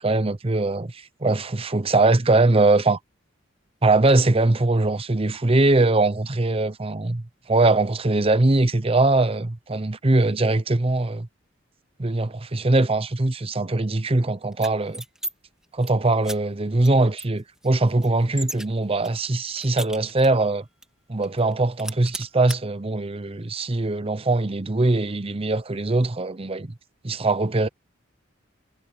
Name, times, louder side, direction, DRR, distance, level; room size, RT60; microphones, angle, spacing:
voice 1, 0.0-3.0 3.8-11.3 12.0-15.0 15.7-20.6 21.1-26.7 27.0-27.7, right 2 dB, 30° right, 0.8 m, -21 dB
sound 1, 14.5-15.3 15.6-15.9 16.2-16.4 16.8-16.9 17.2-18.7 19.0-20.4 20.8-20.9 21.2-21.5 21.8-22.6, right 1 dB, 5° right, 2.0 m, -35 dB
head